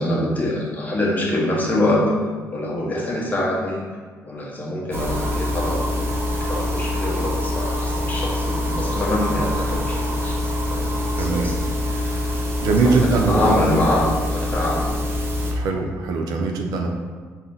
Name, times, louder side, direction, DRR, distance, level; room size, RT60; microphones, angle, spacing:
voice 1, 0.0-2.1 2.5-3.8 4.2-12.3 12.6-14.0 14.3-15.0, left 1 dB, 25° left, -4 dB, 1.2 m, -25 dB
sound 1, 4.9-15.5, left 1 dB, 35° right, 0.9 m, -25 dB
voice 2, 11.2-11.6 12.2-13.8 15.5-16.9, right 4 dB, 75° right, 2 dB, 0.5 m, -22 dB
4.0 x 2.7 x 3.8 m, 1.5 s
supercardioid pair, 70°, 7 cm